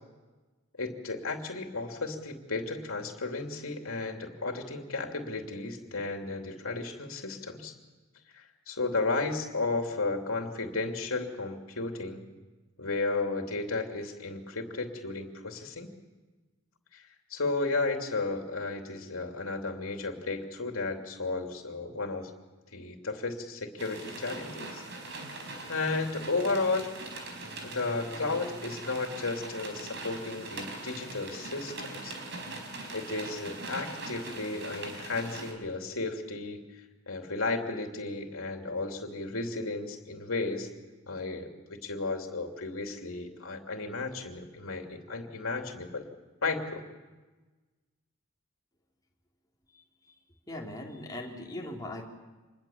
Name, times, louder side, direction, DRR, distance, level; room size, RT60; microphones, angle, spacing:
voice 1, 0.8-7.7 8.3-12.2 12.8-15.9 16.9-17.0 17.3-22.3 22.7-24.8 25.7-26.9 27.6-32.2 32.9-36.6 37.1-40.7 41.1-46.0 46.4-46.8, left 3 dB, 80° left, 3 dB, 3.0 m, -33 dB
sound 1, 23.8-35.5, right 2 dB, 55° right, 4.8 m, -41 dB
voice 2, 50.5-52.0, left 1 dB, 20° left, -1 dB, 3.6 m, -39 dB
27.0 x 21.0 x 7.3 m, 1.2 s
head